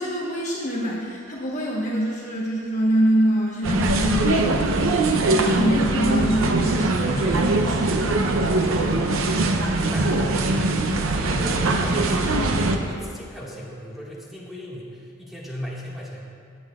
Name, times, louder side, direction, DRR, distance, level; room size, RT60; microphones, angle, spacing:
voice 1, 0.0-4.9 5.3-7.2, right 1 dB, 35° left, -4 dB, 1.2 m, -25 dB
sound 1, 3.6-12.8, right 2 dB, 70° right, 0.7 m, -21 dB
voice 2, 7.0-9.2 9.5-10.8 11.1-16.2, equal, ahead, -7 dB, 1.8 m, -35 dB
18.5 x 7.8 x 2.4 m, 2.1 s
head